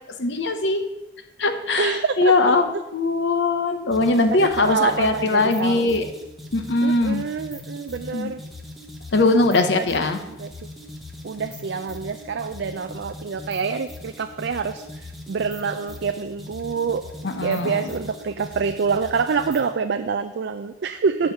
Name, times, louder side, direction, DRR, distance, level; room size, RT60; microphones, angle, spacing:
voice 1, 0.2-0.8 1.4-6.0 6.5-7.2 8.1-8.3 9.1-10.2 17.2-17.8, left 2 dB, 65° left, 8 dB, 0.8 m, -21 dB
voice 2, 1.8-2.3 4.3-5.9 6.8-8.4 9.9-10.0 10.3-10.5 11.2-17.0 17.4-21.3, right 5 dB, 60° right, 7 dB, 0.4 m, -26 dB
sound 1, 3.9-19.8, left 1 dB, ahead, 0.9 m, -40 dB
8.0 x 4.7 x 6.8 m, 0.97 s
head